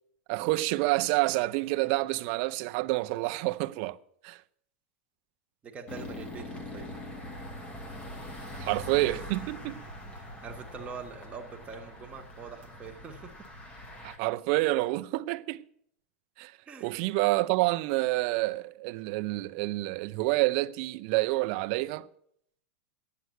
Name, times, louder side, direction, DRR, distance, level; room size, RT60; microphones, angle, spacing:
voice 1, 0.3-4.0 4.2-4.4 8.5-9.8 14.0-15.6 16.4-16.5 16.8-22.1, right 20 dB, 45° right, 0.5 m, -28 dB
voice 2, 5.6-6.9 10.1-13.5 16.7-16.9, right 5 dB, 20° right, 1.3 m, -44 dB
sound 1, 5.9-14.2, left 1 dB, 15° left, 1.3 m, -42 dB
9.2 x 8.0 x 9.4 m
supercardioid pair, 160°, 7 cm